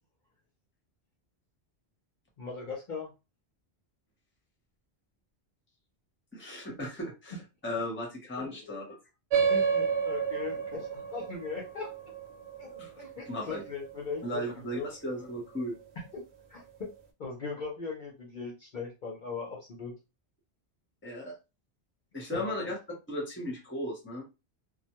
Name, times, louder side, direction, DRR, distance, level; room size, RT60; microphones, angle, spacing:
voice 1, 2.4-3.1 8.4-8.7 9.5-11.9 12.6-14.4 14.7-14.9 16.0-16.2 16.5-16.9 17.2-19.9 22.3-22.6, left 4 dB, 55° left, -2 dB, 0.7 m, -39 dB
voice 2, 6.3-9.0 12.8-12.9 13.3-13.6 14.2-15.7 21.0-21.4 22.1-22.8 23.1-24.2, equal, 15° left, 0 dB, 0.6 m, -36 dB
sound 1, 9.3-14.3, right 6 dB, 80° right, 0.9 m, -31 dB
2.1 x 2.0 x 2.9 m, 0.27 s
omnidirectional pair, 1.1 m